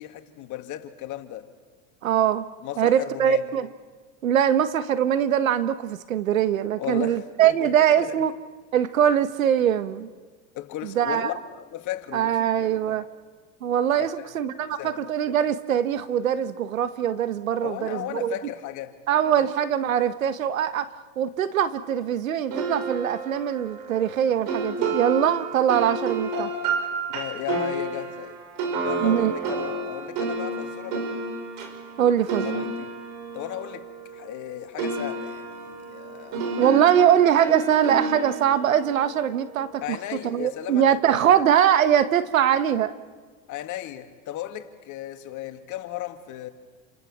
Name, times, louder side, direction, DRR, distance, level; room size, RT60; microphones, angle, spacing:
voice 1, 0.0-1.5 2.6-3.5 6.8-8.2 10.5-13.0 13.9-14.3 14.8-15.0 17.6-19.0 19.3-19.4 27.1-28.4 28.8-31.1 32.4-33.0 33.3-36.5 39.8-41.4 43.5-46.5, left 13 dB, 50° left, 2.5 m, -35 dB
voice 2, 2.0-2.5 2.8-3.7 4.2-8.3 8.7-10.1 10.8-11.3 12.1-13.0 13.6-18.3 19.1-20.9 21.2-26.5 29.0-29.3 32.0-32.6 36.6-42.9, right 9 dB, 90° right, 1.4 m, -22 dB
sound 1, 22.5-34.5 34.8-40.0, right 3 dB, 55° right, 5.9 m, -31 dB
29.5 x 27.5 x 7.4 m
hypercardioid pair, 95°, 39 cm